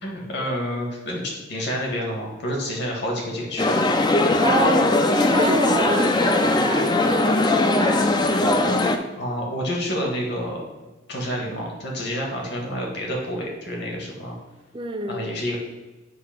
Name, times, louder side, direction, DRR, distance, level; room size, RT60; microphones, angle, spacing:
voice 1, 0.0-3.7 9.2-10.6 11.1-14.4 15.1-15.6, equal, 55° left, -1 dB, 1.6 m, -28 dB
sound 1, 3.6-9.0, left 2 dB, 20° left, 0.4 m, -20 dB
voice 2, 4.4-8.1 14.7-15.3, right 2 dB, 25° right, 5 dB, 0.6 m, -27 dB
7.9 x 2.8 x 5.8 m, 1.2 s
head